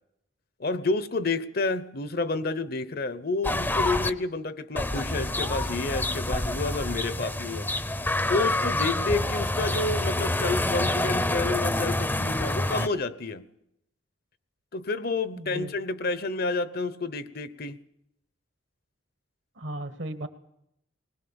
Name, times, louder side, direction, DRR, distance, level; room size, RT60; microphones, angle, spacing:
voice 1, 0.6-7.7 8.3-13.4 14.7-17.8, left 3 dB, 50° left, 14 dB, 0.9 m, -29 dB
sound 1, 3.4-4.1 4.8-12.9, left 1 dB, 10° left, 0.7 m, -27 dB
voice 2, 15.3-15.7 19.6-20.3, right 1 dB, 65° right, 9 dB, 1.6 m, -35 dB
21.0 x 20.0 x 7.1 m, 0.78 s
head